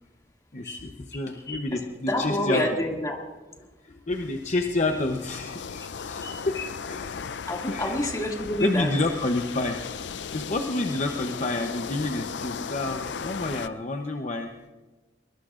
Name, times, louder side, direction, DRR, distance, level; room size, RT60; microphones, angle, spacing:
voice 1, 0.5-2.6 3.8-6.5 6.9-7.3 7.7-7.9 8.6-9.8 10.3-14.5, left 2 dB, 45° left, 4 dB, 0.8 m, -29 dB
voice 2, 2.1-3.2 6.2-6.7 7.5-8.9, left 1 dB, 20° left, 0 dB, 2.3 m, -28 dB
sound 1, 4.1-13.7, left 6 dB, 80° left, 0.5 m, -37 dB
23.0 x 20.5 x 2.5 m, 1.2 s
head